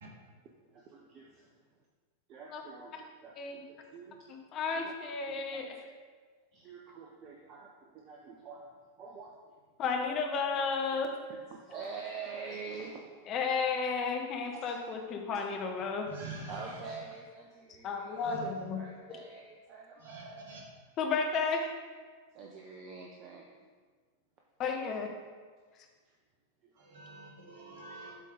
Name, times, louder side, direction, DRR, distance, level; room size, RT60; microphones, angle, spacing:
voice 1, 0.7-1.5 2.3-4.2 4.7-4.9 5.2-5.6 6.5-8.7 9.0-9.4 11.3-13.3 14.3-14.8 15.3-15.4 16.5-18.3 18.7-20.6 22.3-23.5 26.1-26.2 26.6-27.0, right 4 dB, 35° right, 0 dB, 0.6 m, -46 dB
voice 2, 4.3-5.7 9.8-11.1 13.3-16.1 17.8-18.8 21.0-21.7 24.6-25.1, left 5 dB, 35° left, 2 dB, 0.9 m, -32 dB
voice 3, 16.1-16.8 18.1-18.7 20.0-20.6 26.8-28.1, right 3 dB, 60° right, -1 dB, 1.5 m, -46 dB
7.6 x 3.7 x 4.9 m, 1.5 s
figure-of-eight pair, 90°, 0 cm